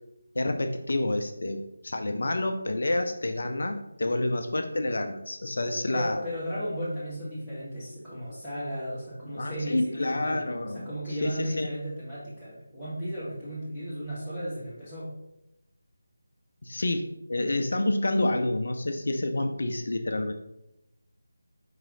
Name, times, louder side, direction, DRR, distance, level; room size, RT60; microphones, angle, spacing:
voice 1, 0.3-6.3 9.4-11.7 16.6-20.3, left 1 dB, 60° left, 6 dB, 0.4 m, -28 dB
voice 2, 5.9-10.4 10.7-15.1, equal, 5° right, -17 dB, 1.1 m, -35 dB
4.7 x 3.0 x 3.8 m, 0.87 s
figure-of-eight pair, 160°, 0 cm